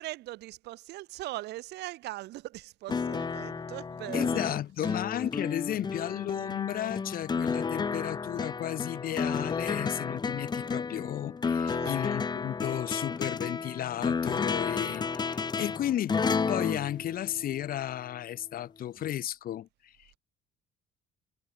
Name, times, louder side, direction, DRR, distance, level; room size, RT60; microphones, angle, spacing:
voice 1, 0.0-5.0 11.7-12.3, right 17 dB, 80° right, 6.1 m, -41 dB
sound 1, 2.9-17.8 19.0-19.1, left 5 dB, 25° left, 1.0 m, -32 dB
voice 2, 4.1-20.1, left 12 dB, 60° left, 1.7 m, -34 dB
cardioid pair, 110°, 17 cm